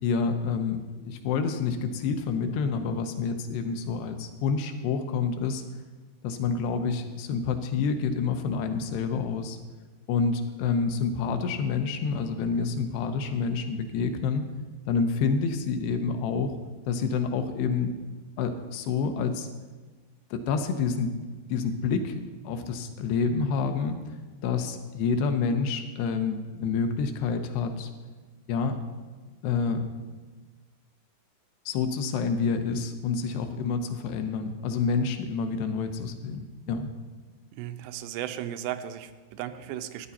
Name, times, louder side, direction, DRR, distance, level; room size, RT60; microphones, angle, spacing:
voice 1, 0.0-5.6 6.2-9.6 10.1-14.5 14.9-16.6 16.9-17.9 18.4-19.5 20.3-21.1 21.5-24.2 24.4-27.9 28.5-28.8 29.4-29.9 31.7-36.9, left 5 dB, 80° left, 6 dB, 2.7 m, -28 dB
voice 2, 37.5-40.1, right 11 dB, 85° right, 9 dB, 2.8 m, -36 dB
14.0 x 9.6 x 4.1 m, 1.3 s
omnidirectional pair, 5.0 m